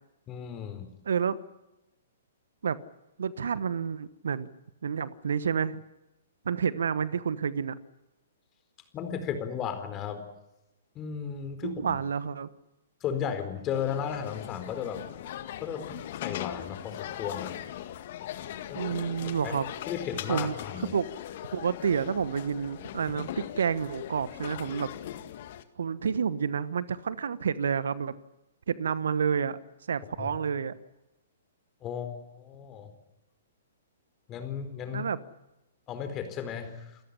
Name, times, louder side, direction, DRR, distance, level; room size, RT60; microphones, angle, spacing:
voice 1, 0.3-0.9 8.9-10.2 10.9-12.0 13.0-15.1 15.5-17.5 18.7-18.8 19.2-19.5 19.9-21.0 30.2-30.3 31.8-32.9 34.3-35.1 35.9-37.0, left 8 dB, 25° left, 8 dB, 4.4 m, -35 dB
voice 2, 1.0-1.4 2.6-2.8 3.2-4.5 4.8-5.8 6.4-7.8 11.6-12.5 18.8-19.7 20.3-21.1 21.5-24.9 25.8-28.1 28.7-29.6 29.9-30.7 34.9-35.2, right 7 dB, 70° right, 17 dB, 1.2 m, -29 dB
sound 1, 13.7-25.6, left 11 dB, 50° left, 1.9 m, -39 dB
29.0 x 14.0 x 9.9 m, 0.97 s
hypercardioid pair, 125°, 0 cm